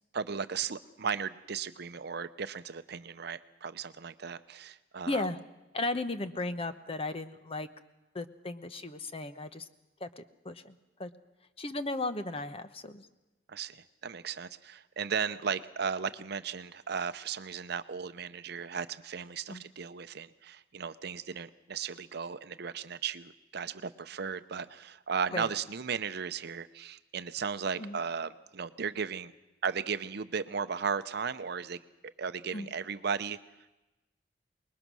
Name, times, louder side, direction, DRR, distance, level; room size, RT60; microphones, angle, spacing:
voice 1, 0.1-5.3 13.5-29.3 29.6-33.4, right 6 dB, 60° right, 12 dB, 0.7 m, -36 dB
voice 2, 5.1-5.4 5.7-7.7 8.1-9.6 10.0-10.7 11.0-11.1 11.6-13.1 19.5-19.6 25.3-25.5 27.8-28.0 32.5-32.7, left 2 dB, 35° left, 10 dB, 0.9 m, -35 dB
25.0 x 20.5 x 6.2 m, 1.0 s
head